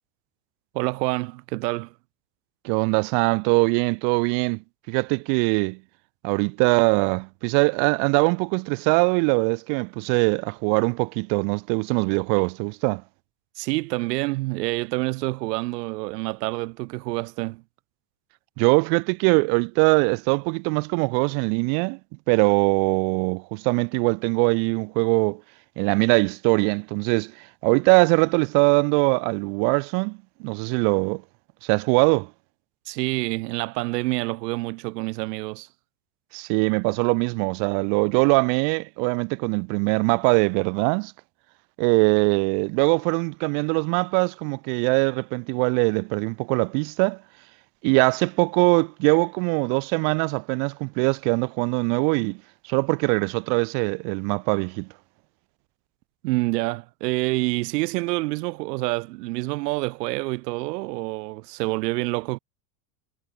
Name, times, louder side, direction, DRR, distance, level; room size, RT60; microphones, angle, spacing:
voice 1, 0.7-1.9 13.6-17.6 32.9-35.7 56.2-62.4, right 23 dB, 90° right, 0.7 m, -27 dB
voice 2, 2.6-4.6 4.9-5.8 6.2-13.0 18.6-22.0 22.3-25.4 25.8-31.2 31.6-32.3 36.3-41.1 41.8-47.2 47.8-52.4 52.7-54.9, right 40 dB or more, 40° right, 0.6 m, -22 dB
supercardioid pair, 165°, 46 cm